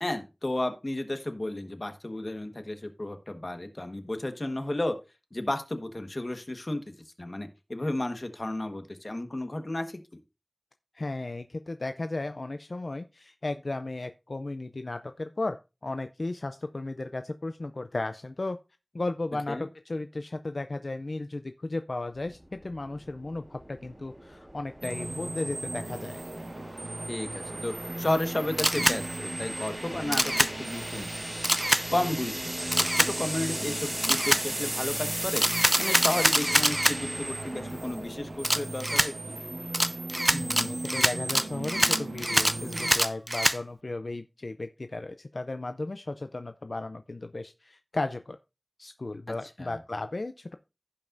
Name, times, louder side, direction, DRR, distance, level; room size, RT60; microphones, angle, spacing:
voice 1, 0.0-4.9 5.3-10.0 19.5-19.7 27.1-31.1 31.9-32.3 32.6-35.4 35.8-39.4 49.6-49.7, left 1 dB, 50° left, 7 dB, 1.4 m, -33 dB
voice 2, 10.9-15.6 15.8-18.6 18.9-26.2 40.3-48.4 48.8-50.6, left 2 dB, 85° left, 9 dB, 0.4 m, -35 dB
sound 1, 22.2-38.4, right 1 dB, 35° right, 3.6 m, -38 dB
sound 2, 24.8-42.9, right 2 dB, 80° right, 1.6 m, -37 dB
Camera, 28.6-29.0 30.1-30.5 31.4-31.8 32.7-33.1 34.0-34.4 35.4-37.0 38.4-39.1 39.7-43.6, equal, 15° right, 0.5 m, -24 dB
16.0 x 5.4 x 2.6 m, 0.28 s
wide cardioid pair, 50°, 0 cm